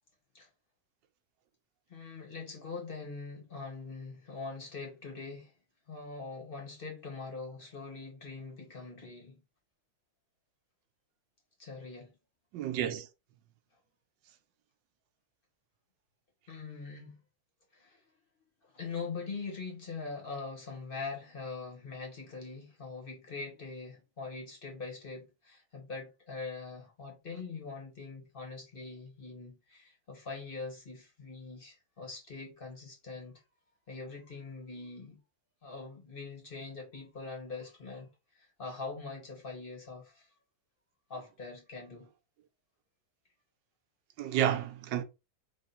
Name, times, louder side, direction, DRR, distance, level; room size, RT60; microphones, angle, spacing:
voice 1, 1.9-5.5 5.9-9.4 11.6-12.1 16.5-17.1 17.7-18.0 18.6-33.4 33.9-35.2 35.6-38.1 38.4-40.3 41.1-42.1, left 4 dB, 30° left, 1.7 m, -43 dB
voice 2, 12.5-13.1 44.2-45.0, right 10 dB, 80° right, 1.4 m, -30 dB
3.8 x 3.1 x 4.2 m
omnidirectional pair, 2.0 m